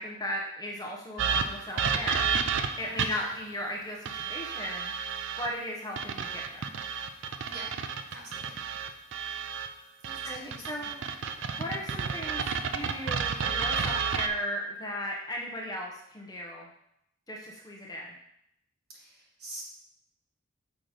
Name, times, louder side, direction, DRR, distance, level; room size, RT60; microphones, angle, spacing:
voice 1, 0.0-2.3 2.8-4.9 5.4-6.7 10.2-11.1 11.5-16.7 17.3-18.2, equal, 20° left, -1 dB, 0.8 m, -36 dB
sound 1, 1.2-3.3 4.1-5.5 6.0-9.7 10.0-14.3, right 6 dB, 65° right, 0.5 m, -31 dB
voice 2, 2.8-3.2 7.5-7.7 8.1-8.6 10.0-10.8 18.9-19.6, right 1 dB, 50° right, -3 dB, 1.7 m, -46 dB
6.1 x 3.9 x 5.0 m, 0.75 s
head